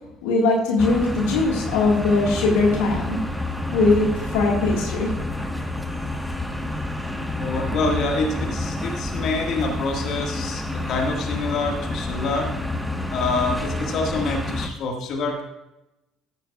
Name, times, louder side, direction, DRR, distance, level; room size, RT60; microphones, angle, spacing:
voice 1, 0.2-3.2 3.7-5.1, left 3 dB, 70° left, -1 dB, 1.7 m, -20 dB
sound 1, 0.8-14.7, left 2 dB, ahead, 1.3 m, -29 dB
voice 2, 7.4-12.5 13.1-15.4, left 3 dB, 55° left, 1 dB, 1.7 m, -26 dB
14.0 x 9.1 x 2.4 m, 0.96 s
hypercardioid pair, 60°, 0 cm